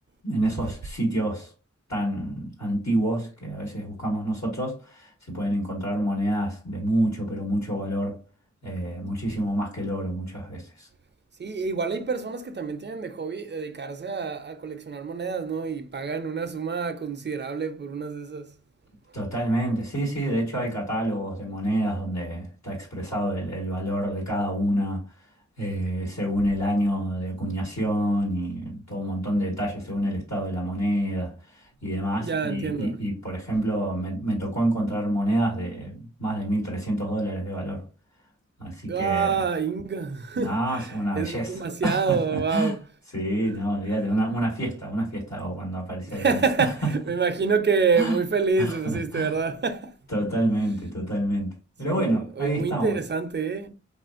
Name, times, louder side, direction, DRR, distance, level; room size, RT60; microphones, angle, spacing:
voice 1, 0.2-1.5 1.9-8.2 8.6-10.9 19.1-25.0 25.6-37.8 38.6-39.4 40.3-42.7 43.1-46.4 46.8-47.0 47.9-48.2 48.6-49.3 50.1-53.0, right 1 dB, 65° left, 1.3 m, -27 dB
voice 2, 11.4-18.5 32.2-33.0 38.9-42.8 46.1-49.9 51.9-53.7, right 5 dB, 40° right, 0.4 m, -27 dB
3.2 x 2.4 x 2.4 m
wide cardioid pair, 65°, 29 cm